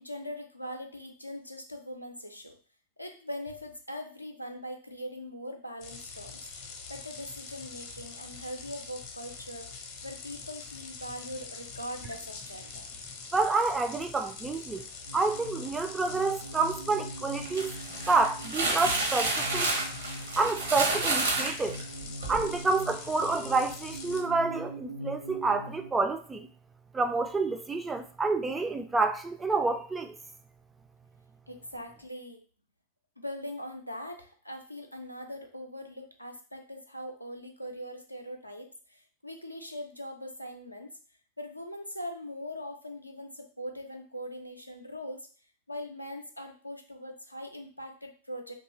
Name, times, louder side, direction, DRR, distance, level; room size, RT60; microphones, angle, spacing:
voice 1, 0.0-2.6 3.0-6.5 6.9-9.7 10.0-12.9 31.5-32.4 33.2-41.0 41.4-45.3 45.7-48.5, equal, 90° left, 0.4 m, -41 dB
sound 1, 5.8-24.2, left 5 dB, 45° left, 0.6 m, -44 dB
voice 2, 13.3-14.8 15.1-17.7 18.1-19.7 20.4-21.8 22.3-26.5 26.9-30.2, right 3 dB, 15° right, 0.3 m, -28 dB
sound 2, 15.1-25.9, right 1 dB, 85° right, 0.4 m, -42 dB
sound 3, 17.4-22.5, right 2 dB, 65° right, 0.8 m, -30 dB
2.7 x 2.3 x 2.9 m
figure-of-eight pair, 90°, 0 cm